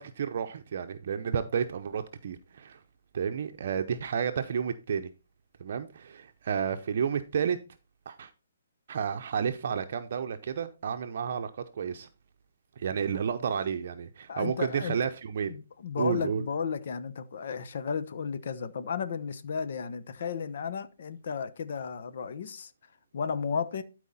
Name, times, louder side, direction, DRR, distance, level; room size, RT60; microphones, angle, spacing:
voice 1, 0.0-2.8 3.1-5.1 5.6-7.6 8.1-8.3 8.9-12.1 12.8-15.6 16.0-16.4, right 7 dB, 50° right, 0.7 m, -31 dB
voice 2, 14.3-15.0 15.5-22.7 23.1-23.8, left 6 dB, 55° left, 0.9 m, -34 dB
12.5 x 4.7 x 4.1 m
hypercardioid pair, 160°, 0 cm